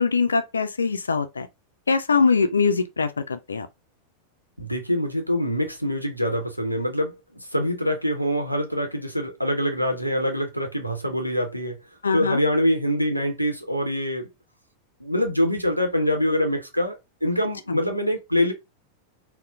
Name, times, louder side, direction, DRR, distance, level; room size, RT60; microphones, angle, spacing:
voice 1, 0.0-1.5 1.9-3.7 12.0-12.4 17.7-17.8, left 5 dB, 75° left, 0.4 m, -22 dB
voice 2, 4.6-11.8 12.1-14.3 15.0-18.5, equal, 90° right, 0.7 m, -25 dB
4.1 x 2.0 x 2.3 m
figure-of-eight pair, 90°, 0 cm